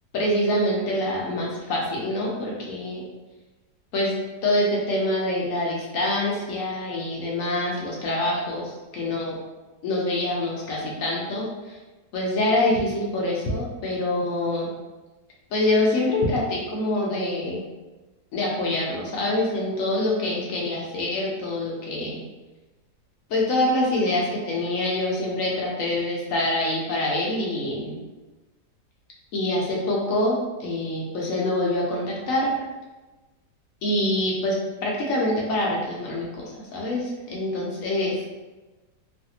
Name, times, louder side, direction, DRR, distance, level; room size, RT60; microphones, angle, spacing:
voice 1, 0.1-3.0 3.9-4.2 4.4-9.3 9.8-11.8 12.1-14.7 15.5-17.7 18.3-22.2 23.3-28.0 29.3-32.5 33.8-34.6 34.8-38.1, left 1 dB, 65° left, -3 dB, 0.9 m, -25 dB
3.1 x 2.5 x 2.8 m, 1.1 s
omnidirectional pair, 1.9 m